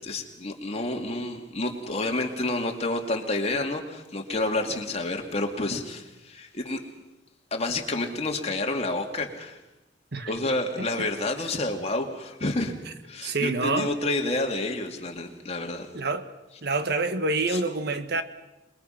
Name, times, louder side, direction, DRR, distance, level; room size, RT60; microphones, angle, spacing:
voice 1, 0.1-6.8 7.5-9.6 10.3-12.7 13.1-15.9 17.5-17.6, left 2 dB, 35° left, 3 dB, 2.6 m, -29 dB
voice 2, 13.2-13.9 15.9-16.3 16.6-18.2, right 3 dB, 65° right, 9 dB, 1.5 m, -27 dB
27.5 x 21.5 x 5.9 m, 0.99 s
head